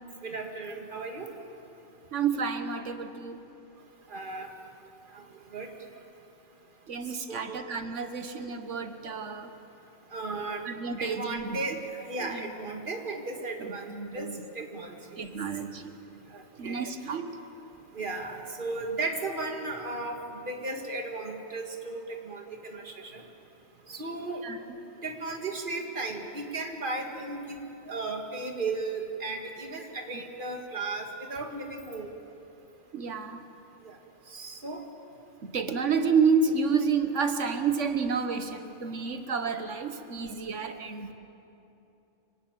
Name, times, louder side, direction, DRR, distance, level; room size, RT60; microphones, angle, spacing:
voice 1, 0.2-1.3 4.1-4.5 5.1-5.7 7.3-7.6 10.1-10.6 11.0-15.2 16.3-17.1 17.9-23.2 23.9-24.4 25.0-32.1 33.8-34.0 34.3-34.8, right 3 dB, 45° right, 3 dB, 2.1 m, -35 dB
voice 2, 2.1-3.4 6.9-9.5 10.6-11.6 12.2-12.5 13.6-14.5 15.2-16.0 16.6-17.4 24.4-24.6 30.1-30.2 32.9-33.5 35.4-41.1, right 5 dB, 75° right, 8 dB, 1.5 m, -30 dB
25.5 x 18.0 x 9.0 m, 2.8 s
omnidirectional pair, 1.3 m